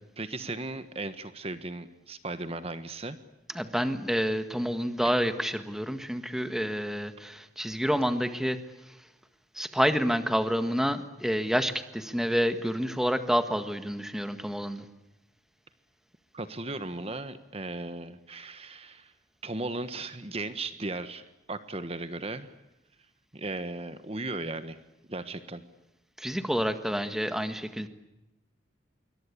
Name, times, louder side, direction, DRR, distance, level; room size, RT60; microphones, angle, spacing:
voice 1, 0.2-3.2 16.3-19.1 19.4-22.5 23.3-24.8 25.1-25.6, right 2 dB, 30° right, 11 dB, 1.3 m, -36 dB
voice 2, 3.6-8.6 9.6-14.9 26.2-27.9, equal, ahead, 9 dB, 1.6 m, -28 dB
26.5 x 24.0 x 8.6 m, 0.97 s
head